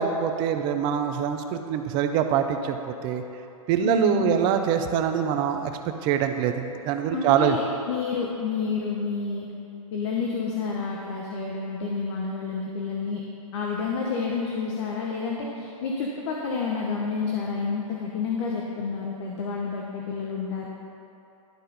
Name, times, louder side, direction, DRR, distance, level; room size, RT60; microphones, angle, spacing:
voice 1, 0.0-2.8 3.0-3.2 3.7-5.7 6.0-7.6, right 9 dB, 25° right, 7 dB, 0.4 m, -24 dB
voice 2, 3.8-4.4 7.1-9.5 9.9-13.2 13.5-20.7, left 5 dB, 50° left, -2 dB, 0.9 m, -29 dB
11.5 x 4.1 x 3.9 m, 2.9 s
hypercardioid pair, 140°, 18 cm